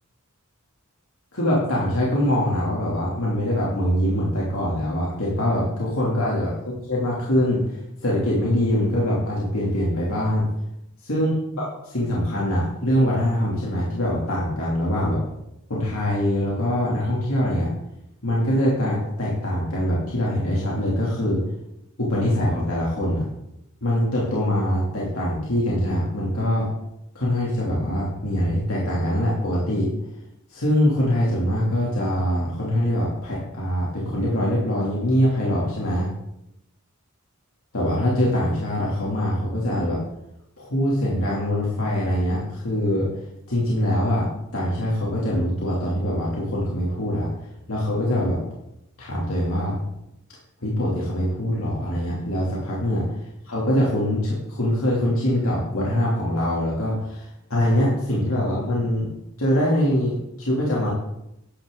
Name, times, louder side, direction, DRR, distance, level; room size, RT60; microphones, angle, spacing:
voice 1, 1.3-10.4 11.0-15.2 15.7-17.7 18.2-21.4 22.0-23.2 23.8-26.7 27.1-29.9 30.5-36.1 37.7-40.0 40.6-43.1 43.5-44.3 44.5-47.3 47.7-48.4 49.0-49.8 50.6-53.1 53.4-59.1 59.4-60.9, equal, 70° left, -5 dB, 2.8 m, -23 dB
11.5 x 10.0 x 3.8 m, 0.83 s
head